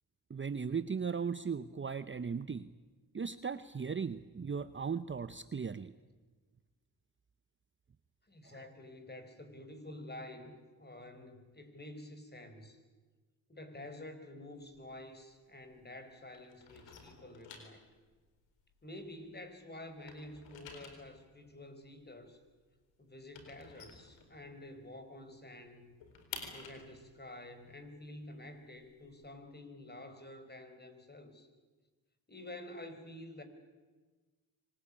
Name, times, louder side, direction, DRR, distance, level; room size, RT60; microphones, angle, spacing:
voice 1, 0.3-2.7 3.1-5.9 8.4-8.7, right 6 dB, 25° right, 13 dB, 0.9 m, -37 dB
voice 2, 8.3-12.8 13.5-17.8 18.8-22.4 23.0-25.9 26.4-31.5 32.3-33.4, left 1 dB, 20° left, 8 dB, 5.0 m, -49 dB
sound 1, 14.6-16.0 16.3-19.5 19.8-24.8 25.1-25.2 25.5-29.3, left 5 dB, 85° left, 4.3 m, -52 dB
25.0 x 20.0 x 8.8 m, 1.3 s
supercardioid pair, 55°, 43 cm